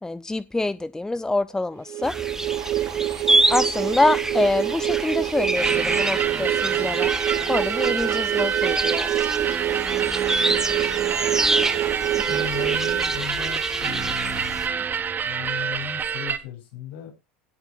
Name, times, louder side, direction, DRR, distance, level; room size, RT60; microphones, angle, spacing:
voice 1, 0.0-2.1 3.5-7.1 7.5-9.1, left 2 dB, 10° left, 0.5 m, -25 dB
sound 1, 1.9-13.7, right 13 dB, 55° right, 1.9 m, -27 dB
sound 2, 2.0-14.7, right 2 dB, 5° right, 1.1 m, -27 dB
sound 3, 5.5-16.4, right 7 dB, 30° right, 1.4 m, -27 dB
voice 2, 11.1-11.4 12.1-15.0 15.2-17.1, left 9 dB, 70° left, 7.6 m, -37 dB
16.5 x 7.0 x 3.8 m
hypercardioid pair, 85°, 6 cm